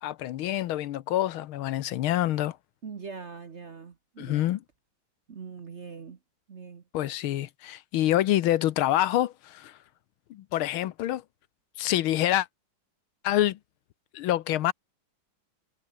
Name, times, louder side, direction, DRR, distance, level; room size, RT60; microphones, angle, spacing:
voice 1, 0.0-2.6 4.2-4.6 6.9-9.8 10.3-11.2 11.8-12.5 13.2-13.6 14.1-14.7, left 13 dB, 75° left, 1.6 m, -26 dB
voice 2, 2.8-4.5 5.3-6.2 6.5-6.8, right 5 dB, 40° right, 1.1 m, -42 dB
omnidirectional pair, 2.4 m